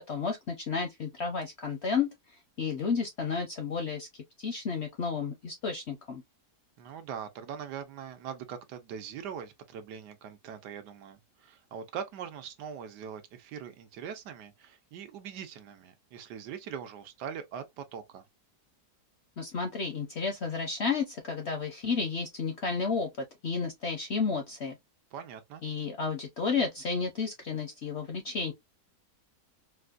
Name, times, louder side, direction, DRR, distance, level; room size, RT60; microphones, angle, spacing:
voice 1, 0.0-2.1 2.6-6.2 19.4-24.8 25.6-28.5, left 5 dB, 65° left, 0.7 m, -32 dB
voice 2, 6.8-18.2 25.1-25.6, right 8 dB, 80° right, 1.3 m, -42 dB
4.1 x 2.2 x 2.4 m
omnidirectional pair, 1.8 m